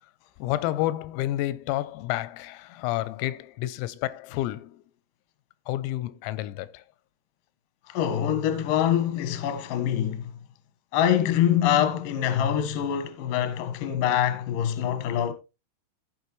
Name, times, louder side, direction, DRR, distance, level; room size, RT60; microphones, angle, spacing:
voice 1, 0.4-4.8 5.7-6.8, left 15 dB, 90° left, 3.5 m, -30 dB
voice 2, 7.9-10.3 10.9-15.3, left 10 dB, 70° left, 2.1 m, -24 dB
15.5 x 6.2 x 3.1 m
omnidirectional pair, 5.9 m